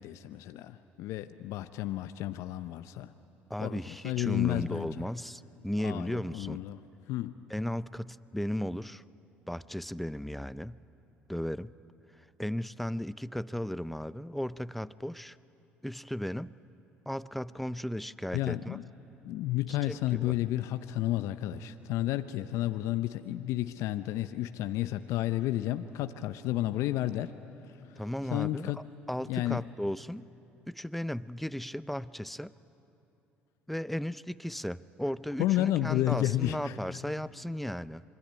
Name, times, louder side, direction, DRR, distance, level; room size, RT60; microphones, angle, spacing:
voice 1, 0.0-3.1 3.6-4.9 5.8-6.8 7.1-7.3 18.3-18.8 19.2-27.3 27.7-28.0 28.3-28.8 29.3-29.6 35.4-36.8, left 14 dB, 70° left, 10 dB, 0.7 m, -31 dB
voice 2, 3.5-6.6 7.5-9.0 9.5-10.8 11.3-11.7 12.2-15.4 15.8-16.5 17.1-18.8 19.9-20.4 28.0-30.3 30.7-32.5 33.7-38.0, equal, ahead, 17 dB, 0.6 m, -35 dB
26.5 x 22.0 x 9.6 m, 3.0 s
hypercardioid pair, 65°, 5 cm